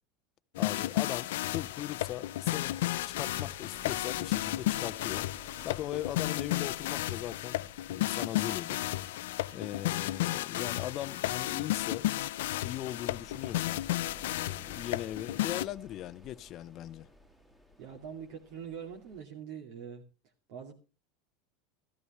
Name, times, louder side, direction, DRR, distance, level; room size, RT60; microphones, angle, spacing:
sound 1, 0.5-15.7, left 15 dB, 85° left, 0.6 m, -33 dB
voice 1, 0.6-5.3 5.6-8.8 9.5-12.1 12.6-13.8 14.3-17.1, left 13 dB, 35° left, 0.6 m, -39 dB
sound 2, 1.5-19.2, left 1 dB, 5° right, 2.1 m, -57 dB
voice 2, 17.8-20.0 20.5-20.8, right 7 dB, 60° right, 2.3 m, -43 dB
14.5 x 14.0 x 3.0 m
supercardioid pair, 155°, 0 cm